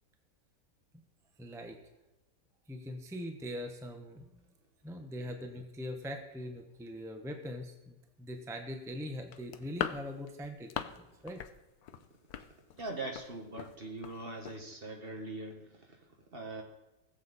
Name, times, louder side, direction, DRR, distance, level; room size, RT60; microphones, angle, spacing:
voice 1, 1.4-1.8 2.7-4.4 4.8-11.4, equal, 5° right, 4 dB, 0.4 m, -42 dB
sound 1, 9.3-11.0 11.3-11.5 11.8-13.3 13.6-13.8 14.0-14.2 14.5-14.6, left 9 dB, 70° left, 1.1 m, -39 dB
voice 2, 12.8-15.7 16.3-16.6, right 2 dB, 35° right, 3 dB, 1.6 m, -41 dB
20.5 x 7.6 x 4.1 m, 1.0 s
omnidirectional pair, 1.9 m